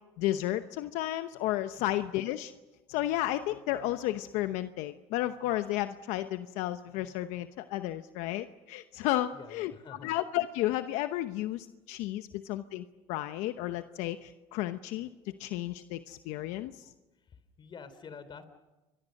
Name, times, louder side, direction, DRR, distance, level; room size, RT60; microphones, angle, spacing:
voice 1, 0.2-2.5 2.9-16.9, left 14 dB, 75° left, 10 dB, 0.9 m, -33 dB
voice 2, 9.3-10.2 12.3-12.4 17.6-18.4, left 5 dB, 40° left, 12 dB, 3.4 m, -48 dB
29.0 x 23.5 x 6.5 m, 1.1 s
supercardioid pair, 95°, 12 cm